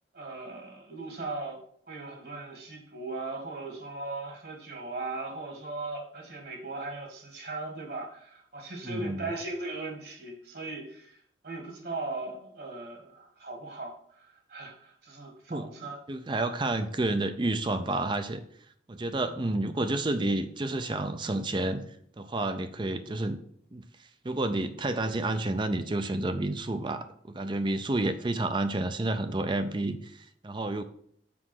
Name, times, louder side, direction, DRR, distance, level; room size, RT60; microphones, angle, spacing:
voice 1, 0.1-1.6 1.9-11.2 11.4-16.0, right 3 dB, 55° right, 2 dB, 2.0 m, -38 dB
voice 2, 8.8-9.3 15.5-15.7 16.1-18.4 18.9-21.8 22.2-23.4 23.7-30.8, right 2 dB, 25° right, 9 dB, 0.5 m, -30 dB
6.1 x 4.9 x 6.3 m, 0.64 s
head